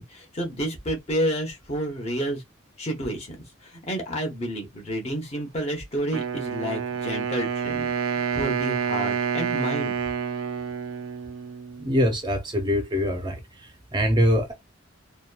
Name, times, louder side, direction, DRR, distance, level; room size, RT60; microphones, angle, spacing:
voice 1, 0.0-2.4 2.8-3.4 3.6-7.9 8.3-10.0, equal, 30° left, 0.8 m, -30 dB
Wind instrument woodwind instrument, 6.1-12.1, right 6 dB, 85° right, 0.4 m, -28 dB
voice 2, 11.8-13.4 13.9-14.5, equal, 20° right, 0.5 m, -23 dB
2.8 x 2.2 x 2.3 m
head